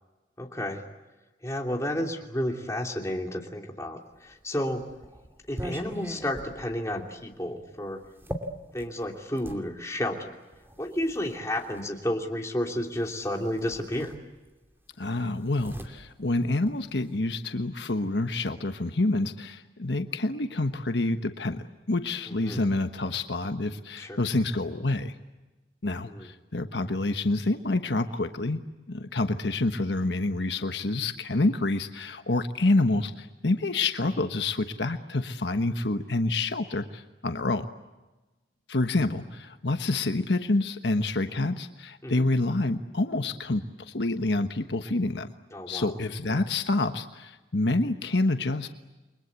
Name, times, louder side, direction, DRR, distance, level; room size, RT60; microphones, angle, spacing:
voice 1, 0.4-0.8 1.4-4.9 5.5-8.0 8.7-10.3 10.8-14.1 22.3-22.6 24.0-24.2 26.1-26.3 42.0-42.2 45.5-45.9 46.3-46.4, left 1 dB, 15° left, 1 dB, 3.0 m, -31 dB
sound 1, 4.3-9.6 10.5-11.9 13.1-13.2 13.6-14.7 14.9-17.2, equal, 15° right, 2.6 m, -41 dB
voice 2, 15.0-25.1 25.8-28.6 28.9-37.7 38.7-45.3 45.7-48.7, left 2 dB, 70° left, 8 dB, 1.2 m, -27 dB
29.5 x 23.0 x 8.3 m, 1.1 s
head